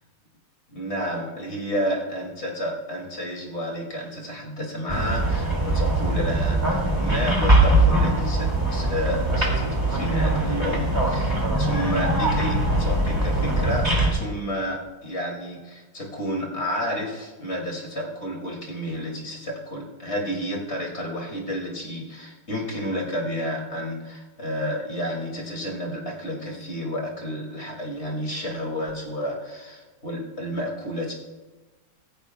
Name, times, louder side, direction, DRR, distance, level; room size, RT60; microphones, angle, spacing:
voice 1, 0.7-31.1, equal, 40° left, -1 dB, 2.8 m, -31 dB
sound 1, 4.9-14.1, right 1 dB, 15° right, 2.5 m, -22 dB
16.5 x 15.0 x 2.3 m, 1.2 s
omnidirectional pair, 1.9 m